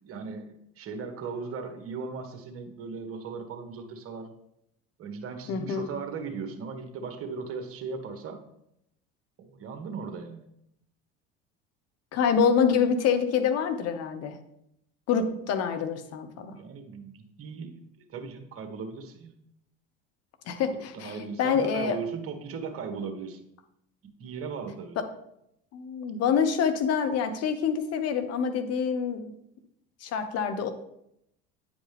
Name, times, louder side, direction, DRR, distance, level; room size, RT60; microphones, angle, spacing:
voice 1, 0.0-4.3 5.0-8.4 9.4-10.5 16.3-17.8 18.1-19.4 20.7-23.4 24.2-25.0, right 5 dB, 50° right, 5 dB, 1.5 m, -37 dB
voice 2, 5.5-5.9 12.1-14.4 15.1-16.6 20.5-22.0 25.0-25.1 25.7-29.3 30.0-30.7, left 6 dB, 55° left, 9 dB, 1.1 m, -26 dB
9.3 x 5.1 x 3.5 m, 0.76 s
hypercardioid pair, 80°, 29 cm